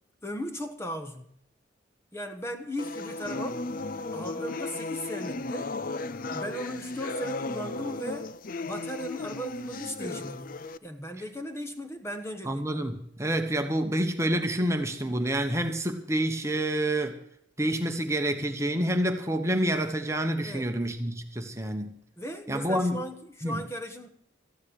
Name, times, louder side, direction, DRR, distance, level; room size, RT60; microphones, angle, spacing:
voice 1, 0.2-1.3 2.1-3.6 4.1-5.7 6.3-10.5 10.8-12.6 20.4-20.7 22.2-24.1, equal, 15° left, 1.3 m, -37 dB
sound 1, 2.8-10.8, left 3 dB, 45° left, 0.5 m, -35 dB
voice 2, 12.5-17.2 17.6-22.0 22.5-23.0 23.4-23.6, right 1 dB, 15° right, 1.2 m, -28 dB
14.5 x 10.5 x 6.5 m
head